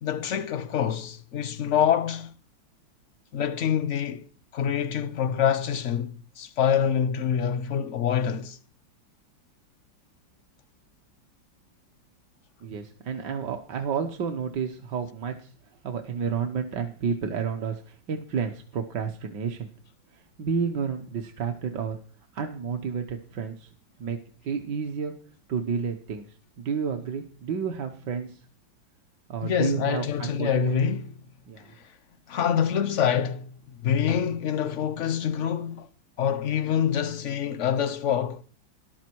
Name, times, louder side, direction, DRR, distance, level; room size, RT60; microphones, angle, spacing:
voice 1, 0.0-2.3 3.3-4.3 4.5-8.6 29.4-31.1 32.3-33.5 33.8-35.9 36.2-38.4, left 8 dB, 65° left, 0.7 m, -26 dB
voice 2, 12.6-15.5 15.8-19.7 20.1-22.0 22.3-23.7 24.0-24.2 24.4-25.1 25.5-26.3 26.6-28.4 29.3-30.8 31.5-31.7, right 6 dB, 65° right, 1.7 m, -30 dB
14.0 x 12.0 x 4.6 m
omnidirectional pair, 2.1 m